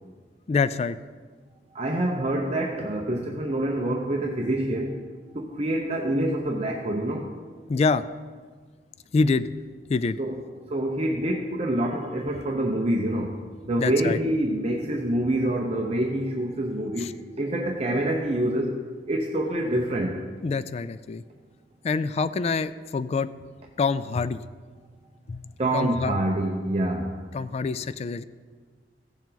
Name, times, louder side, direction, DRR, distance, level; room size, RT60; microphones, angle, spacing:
voice 1, 0.5-1.0 7.7-8.0 9.1-9.5 9.9-10.2 13.8-14.2 17.0-17.1 20.4-21.2 21.8-23.3 23.8-24.4 25.3-26.1 27.3-28.2, left 4 dB, 35° left, 14 dB, 0.3 m, -26 dB
voice 2, 1.7-5.0 5.3-7.3 10.2-10.4 10.7-13.4 13.7-18.8 19.1-20.2 25.6-27.2, right 1 dB, 35° right, 1 dB, 0.7 m, -26 dB
16.0 x 7.1 x 4.0 m, 1.5 s
head